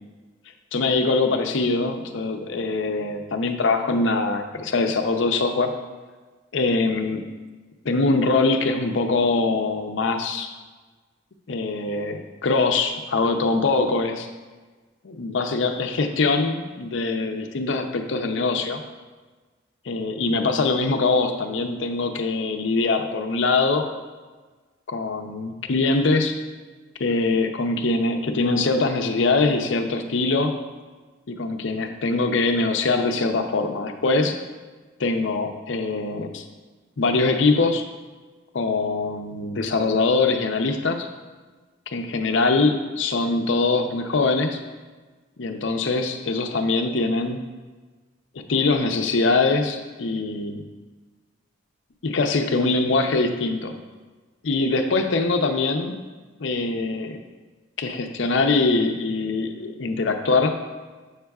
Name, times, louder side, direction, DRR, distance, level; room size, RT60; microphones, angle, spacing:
voice 1, 0.7-5.7 6.5-7.2 7.8-10.5 11.5-14.3 15.0-18.8 19.9-23.9 24.9-26.4 27.0-30.6 31.3-34.4 35.0-36.4 37.0-37.9 38.5-41.1 41.9-44.6 45.4-47.4 48.5-50.6 52.0-53.7 54.4-56.0 56.4-57.2 57.8-60.6, left 3 dB, 70° left, 5 dB, 0.6 m, -23 dB
8.0 x 6.5 x 2.3 m, 1.3 s
head